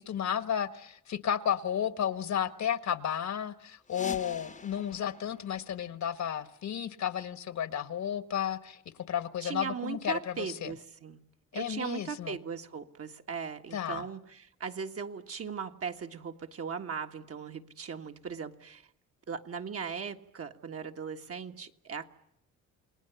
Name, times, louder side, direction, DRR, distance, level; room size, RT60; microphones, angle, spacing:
voice 1, 0.0-8.8 9.1-10.7 11.5-12.4 13.7-14.1, left 9 dB, 60° left, 13 dB, 1.6 m, -33 dB
sound 1, 3.8-6.5, left 4 dB, 25° left, 1.1 m, -46 dB
voice 2, 9.4-11.2 11.5-18.8 19.3-22.1, right 6 dB, 45° right, 5 dB, 1.8 m, -38 dB
29.0 x 20.0 x 7.1 m, 0.77 s
cardioid pair, 90°, 31 cm